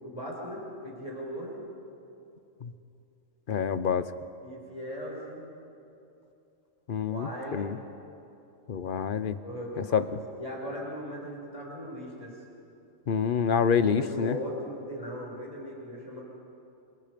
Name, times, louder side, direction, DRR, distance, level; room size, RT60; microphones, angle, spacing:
voice 1, 0.0-1.6 4.4-5.5 7.0-7.7 9.4-12.4 13.7-16.2, equal, 25° left, -3 dB, 6.2 m, -38 dB
voice 2, 3.5-4.1 6.9-7.8 8.7-9.4 9.9-10.0 13.1-14.4, left 7 dB, 45° left, 13 dB, 0.8 m, -27 dB
29.0 x 26.0 x 5.2 m, 2.8 s
omnidirectional pair, 1.4 m